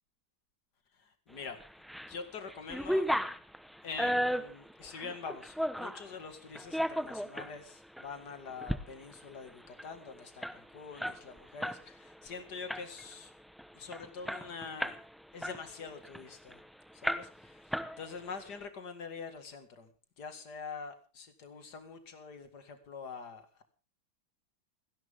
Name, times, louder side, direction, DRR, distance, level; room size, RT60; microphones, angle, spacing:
voice 1, 1.0-1.6 2.1-3.1 3.8-13.3 13.7-15.0 15.3-16.6 16.9-17.3 18.0-19.9 20.2-23.6, left 5 dB, 55° left, 8 dB, 2.6 m, -45 dB
sound 1, 1.6-2.1 2.5-6.0 6.5-7.5 8.0-8.1 8.5-8.8 9.1-9.2 9.5-11.8 12.1-12.3 12.7-13.1 13.6-13.7 13.9-15.0 15.4-16.6 17.0-17.4 17.7-18.3, equal, ahead, 0.4 m, -34 dB
29.0 x 11.0 x 3.7 m, 0.35 s
omnidirectional pair, 2.1 m